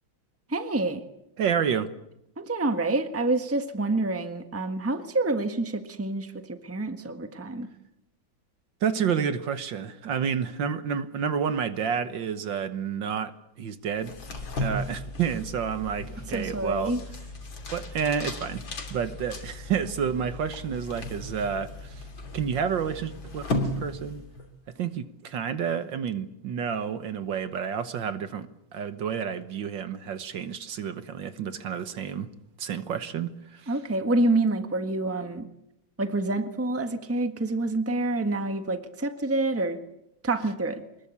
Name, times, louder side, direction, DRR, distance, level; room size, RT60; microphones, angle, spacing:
voice 1, 0.5-1.0 2.4-7.7 16.3-17.0 33.7-35.5 36.0-39.8 40.2-40.8, right 2 dB, 10° right, 1.2 m, -27 dB
voice 2, 1.4-1.9 8.8-14.2 14.5-16.9 17.7-18.6 18.9-22.0 22.3-24.2 24.8-28.5 28.7-32.3 32.6-33.7, right 7 dB, 65° right, 1.8 m, -30 dB
sound 1, 14.0-24.5, left 1 dB, 65° left, 3.7 m, -36 dB
24.5 x 21.0 x 8.4 m
omnidirectional pair, 2.2 m